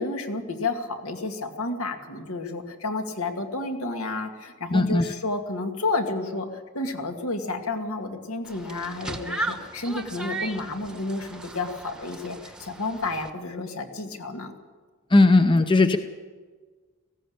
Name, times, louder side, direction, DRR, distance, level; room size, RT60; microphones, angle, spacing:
voice 1, 0.0-14.5, left 2 dB, 75° left, 5 dB, 2.3 m, -31 dB
voice 2, 4.7-5.0 15.1-16.0, left 2 dB, 20° left, 9 dB, 0.7 m, -17 dB
sound 1, 8.4-13.3, right 2 dB, 5° right, 1.1 m, -36 dB
18.5 x 15.5 x 8.8 m, 1.4 s
head